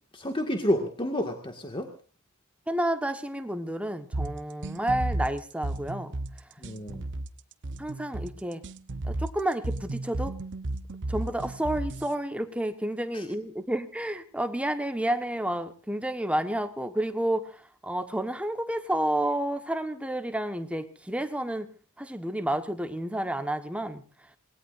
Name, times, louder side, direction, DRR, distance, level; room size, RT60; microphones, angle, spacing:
voice 1, 0.1-1.9 6.6-7.1 13.1-13.2, left 1 dB, 25° left, 4 dB, 2.0 m, -30 dB
voice 2, 2.7-6.2 7.8-8.6 9.1-10.3 11.1-17.6 17.8-21.7 22.0-24.0, right 1 dB, 5° right, 7 dB, 1.3 m, -30 dB
sound 1, 4.1-12.1, right 2 dB, 55° right, 0.9 m, -33 dB
27.0 x 20.0 x 2.6 m, 0.38 s
head